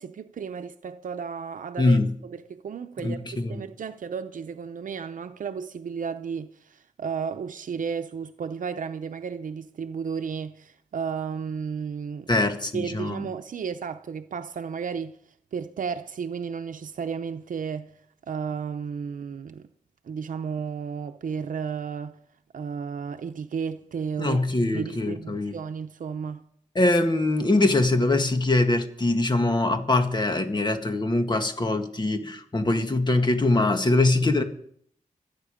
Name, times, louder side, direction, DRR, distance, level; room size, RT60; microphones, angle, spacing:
voice 1, 0.0-3.2 3.5-12.3 12.7-15.2 15.5-17.9 18.3-19.7 20.0-22.2 22.5-24.4 24.7-26.4, right 6 dB, 85° right, 0.7 m, -33 dB
voice 2, 1.8-2.1 3.0-3.6 12.3-13.3 24.2-25.6 26.8-34.4, left 2 dB, 35° left, 1.9 m, -23 dB
26.0 x 9.4 x 5.1 m
wide cardioid pair, 80°, 13 cm